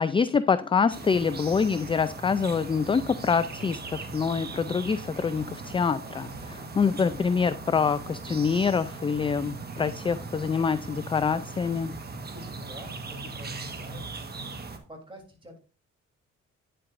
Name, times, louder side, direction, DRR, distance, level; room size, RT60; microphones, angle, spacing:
voice 1, 0.0-11.9, left 5 dB, 20° left, 14 dB, 0.3 m, -26 dB
sound 1, 0.9-14.8, right 3 dB, 35° right, 1.4 m, -39 dB
voice 2, 12.2-14.0 14.9-15.6, equal, 15° right, 2 dB, 3.1 m, -47 dB
9.5 x 7.7 x 2.5 m, 0.36 s
cardioid pair, 90°, 30 cm